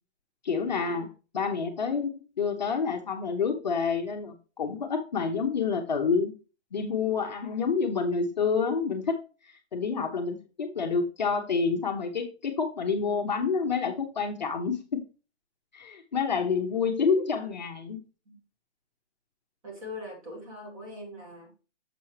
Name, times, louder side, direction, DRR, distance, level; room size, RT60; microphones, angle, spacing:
voice 1, 0.4-1.1 1.3-6.3 6.7-9.2 9.4-15.0 15.7-18.0, left 5 dB, 40° left, 3 dB, 0.8 m, -28 dB
voice 2, 19.6-21.5, left 1 dB, 30° right, 0 dB, 2.4 m, -41 dB
6.8 x 6.0 x 3.1 m, 0.33 s
hypercardioid pair, 175°, 35 cm